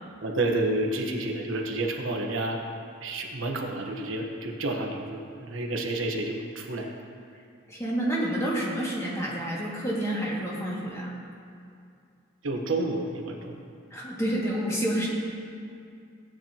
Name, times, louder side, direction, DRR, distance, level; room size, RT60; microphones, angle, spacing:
voice 1, 0.2-2.6 3.0-6.9 12.4-13.6, right 2 dB, 75° right, 2 dB, 1.2 m, -30 dB
voice 2, 7.7-11.1 13.9-15.1, right 1 dB, 15° left, -5 dB, 2.1 m, -29 dB
16.5 x 9.0 x 3.0 m, 2.4 s
head